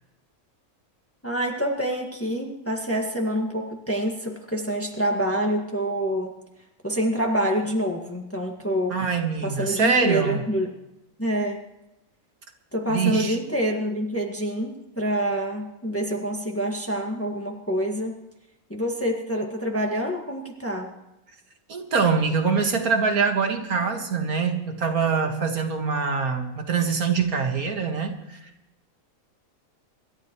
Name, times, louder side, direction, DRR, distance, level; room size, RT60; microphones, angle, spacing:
voice 1, 1.2-6.4 6.8-9.0 9.4-10.7 11.2-11.6 12.7-18.2 18.7-20.9, right 1 dB, 10° left, 1 dB, 1.8 m, -26 dB
voice 2, 8.9-10.5 12.9-13.4 21.7-28.5, right 5 dB, 85° right, 4 dB, 2.3 m, -24 dB
26.5 x 13.0 x 3.1 m, 0.93 s
omnidirectional pair, 1.5 m